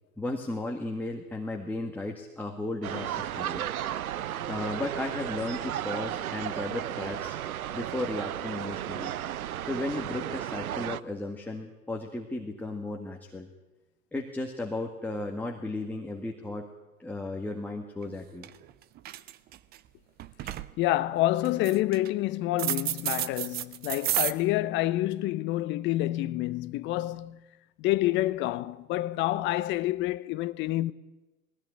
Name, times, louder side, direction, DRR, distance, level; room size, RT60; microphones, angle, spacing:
voice 1, 0.2-3.6 4.5-7.4 7.7-9.1 9.6-13.5 14.1-16.7 17.0-18.5, left 2 dB, 5° left, 1.8 m, -35 dB
sound 1, 2.8-11.0, right 11 dB, 75° right, 0.8 m, -34 dB
sound 2, 18.0-18.1 18.4-18.7 19.0-19.8 20.2-20.7 21.4-22.1 22.6-24.3, right 13 dB, 20° right, 0.7 m, -31 dB
voice 2, 20.8-27.4 27.8-30.9, left 15 dB, 25° left, 0.8 m, -28 dB
20.0 x 16.0 x 9.9 m
hypercardioid pair, 115°, 43 cm